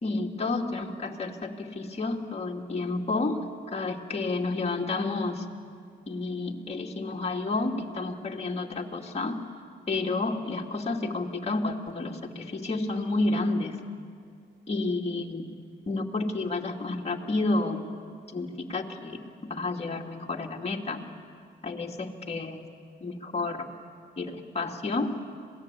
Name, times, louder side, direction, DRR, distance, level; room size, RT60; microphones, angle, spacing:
voice 1, 0.0-3.4 3.7-5.4 6.1-9.4 9.9-13.8 14.7-15.4 15.9-17.8 18.3-19.2 19.5-21.0 21.6-22.6 23.0-23.6 24.2-25.1, left 3 dB, 30° left, 0 dB, 2.5 m, -30 dB
26.0 x 18.5 x 8.4 m, 2.2 s
cardioid pair, 90°, 20 cm